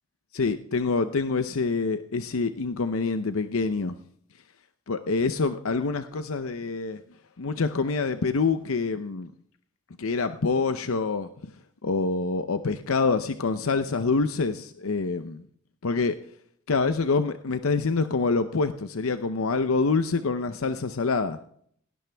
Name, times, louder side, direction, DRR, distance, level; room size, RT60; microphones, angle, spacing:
voice 1, 0.3-4.0 4.9-7.0 7.4-9.3 10.0-11.5 11.8-15.5 15.8-16.2 16.7-21.4, left 4 dB, 75° left, 10 dB, 0.7 m, -26 dB
17.5 x 17.5 x 3.4 m, 0.64 s
head